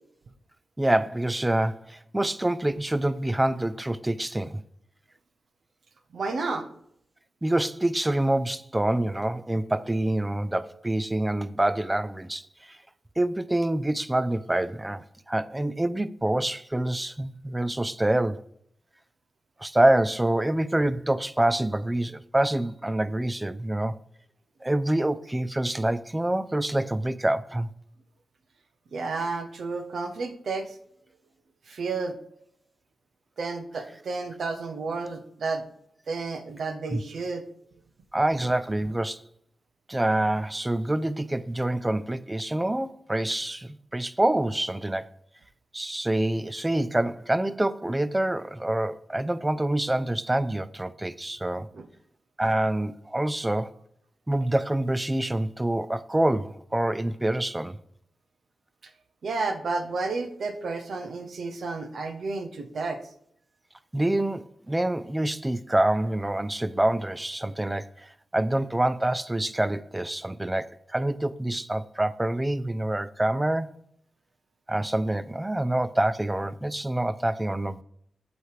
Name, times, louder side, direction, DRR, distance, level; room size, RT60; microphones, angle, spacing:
voice 1, 0.8-4.6 7.4-12.8 13.2-18.4 19.6-24.0 24.6-27.7 36.9-37.0 38.1-39.2 39.9-45.1 45.7-51.7 52.4-53.7 54.3-57.8 63.9-73.7 74.7-77.8, right 1 dB, 15° right, 0.4 m, -26 dB
voice 2, 6.1-6.7 28.9-30.8 31.7-32.1 33.4-35.6 36.1-37.4 51.7-51.9 59.2-63.0, right 3 dB, 70° right, 0.8 m, -31 dB
8.0 x 3.2 x 4.8 m
cardioid pair, 65°, 0 cm